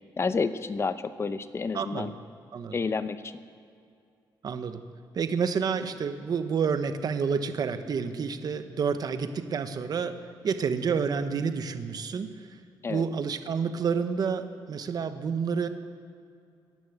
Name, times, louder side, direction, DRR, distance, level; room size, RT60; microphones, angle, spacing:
voice 1, 0.2-2.1 2.7-3.3 12.8-13.1, left 4 dB, 30° left, 12 dB, 0.7 m, -30 dB
voice 2, 1.7-2.1 2.5-2.7 4.4-4.8 5.1-10.2 10.4-12.3 12.9-15.7, right 6 dB, 50° right, 9 dB, 1.0 m, -29 dB
16.0 x 10.5 x 8.0 m, 2.4 s
cardioid pair, 125°, 9 cm